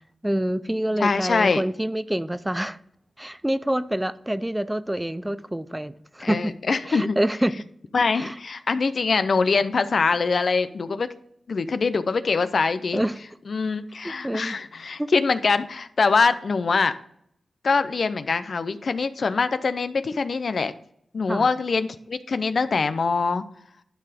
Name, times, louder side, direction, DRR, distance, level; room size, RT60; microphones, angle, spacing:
voice 1, 0.2-2.8 3.2-6.5 6.9-7.6 8.1-8.4 12.9-13.2 14.0-14.6 15.0-15.1 21.3-21.5, right 1 dB, 10° right, 0.5 m, -26 dB
voice 2, 1.0-1.6 6.2-7.2 7.9-11.1 11.5-13.0 13.5-16.9 17.6-20.7 21.1-23.4, left 4 dB, 65° left, 0.6 m, -23 dB
12.0 x 4.7 x 5.1 m
cardioid pair, 55°, 0 cm